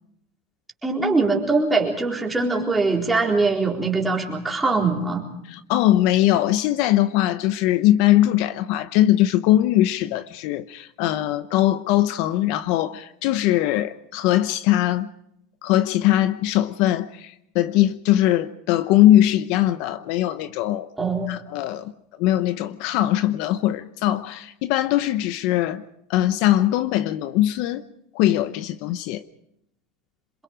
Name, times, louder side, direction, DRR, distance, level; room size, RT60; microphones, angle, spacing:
voice 1, 0.8-5.2 21.0-21.4, right 3 dB, 10° right, 4.0 m, -22 dB
voice 2, 5.5-15.1 15.6-20.9 21.3-21.9 22.2-25.8 26.1-27.8 28.1-29.2, left 13 dB, 55° left, 0.8 m, -21 dB
27.0 x 22.5 x 5.1 m
supercardioid pair, 145°, 0 cm